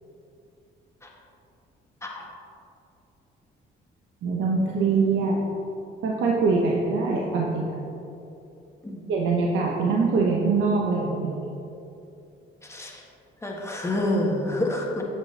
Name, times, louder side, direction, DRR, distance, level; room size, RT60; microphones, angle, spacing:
voice 1, 4.2-5.4 6.0-7.7 9.1-11.5, right 4 dB, 75° right, -2 dB, 0.9 m, -23 dB
voice 2, 13.4-15.0, left 1 dB, 15° left, -1 dB, 1.5 m, -27 dB
9.8 x 7.4 x 3.3 m, 2.8 s
cardioid pair, 90°, 20 cm